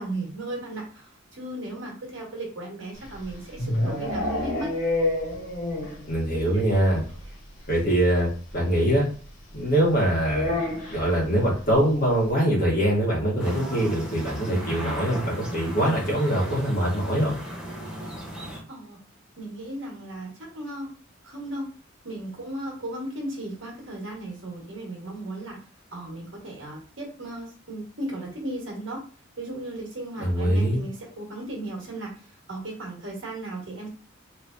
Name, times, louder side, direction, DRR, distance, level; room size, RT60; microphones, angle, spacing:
voice 1, 0.0-4.7 6.5-6.6 18.7-19.0 19.4-20.9 21.2-21.7 22.0-25.6 25.9-29.0 29.4-33.9, right 1 dB, 65° right, -2 dB, 1.4 m, -36 dB
sound 1, 3.0-6.1 6.3-6.4 6.8-6.9 7.1-7.2 8.5-8.6 10.3-11.1, left 2 dB, 85° left, 1.8 m, -28 dB
voice 2, 6.1-7.0 7.7-9.1 9.5-10.6 10.9-17.4 30.2-30.8, right 1 dB, 45° left, -4 dB, 1.6 m, -23 dB
sound 2, 13.4-18.6, equal, 5° right, 0.8 m, -36 dB
3.3 x 3.1 x 2.6 m, 0.39 s
head